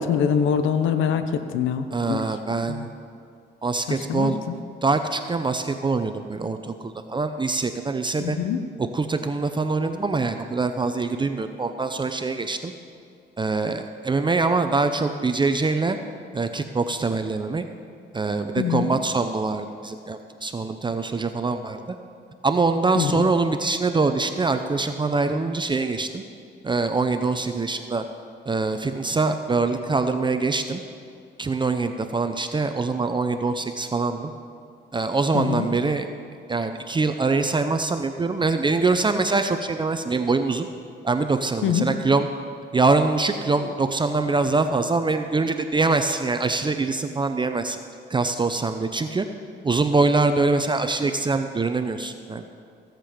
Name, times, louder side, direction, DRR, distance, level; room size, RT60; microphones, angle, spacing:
voice 1, 0.0-2.2 2.7-2.9 3.9-4.6 8.2-8.6 18.6-18.9 23.0-23.3 35.3-35.7 41.6-41.9, left 7 dB, 80° left, 9 dB, 0.8 m, -24 dB
voice 2, 1.9-2.9 3.6-4.4 4.8-8.4 8.8-12.7 13.4-16.0 16.3-17.6 18.1-21.8 22.4-26.2 26.6-28.0 28.5-30.8 31.4-34.3 34.9-36.1 36.5-40.7 41.0-42.3 42.7-47.8 48.1-49.3 49.6-52.4, right 3 dB, 25° right, 7 dB, 0.6 m, -24 dB
16.5 x 7.6 x 5.1 m, 2.3 s
cardioid pair, 90°, 20 cm